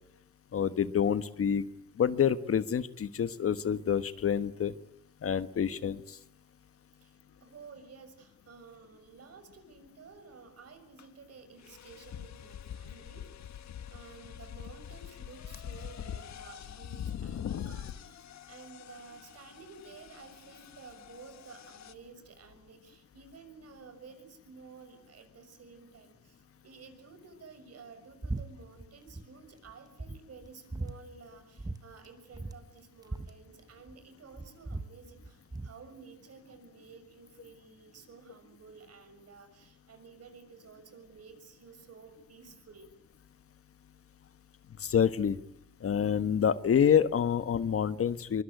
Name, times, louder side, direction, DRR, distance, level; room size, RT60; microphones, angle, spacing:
voice 1, 0.5-1.6 2.0-4.7 5.2-6.2 44.8-45.4 45.8-48.4, left 8 dB, 50° left, 13 dB, 1.3 m, -27 dB
voice 2, 7.0-42.9, right 5 dB, 55° right, 9 dB, 6.5 m, -53 dB
sound 1, 11.0-11.1 11.6-21.9, left 9 dB, 65° left, 1.6 m, -43 dB
sound 2, 28.2-28.5 28.7-29.3 29.6-29.7 30.0-31.0 31.6-31.8 32.0-32.1 32.3-34.0 34.3-35.8, right 2 dB, 10° right, 1.4 m, -38 dB
23.5 x 23.0 x 9.4 m, 0.77 s
cardioid pair, 90°, 30 cm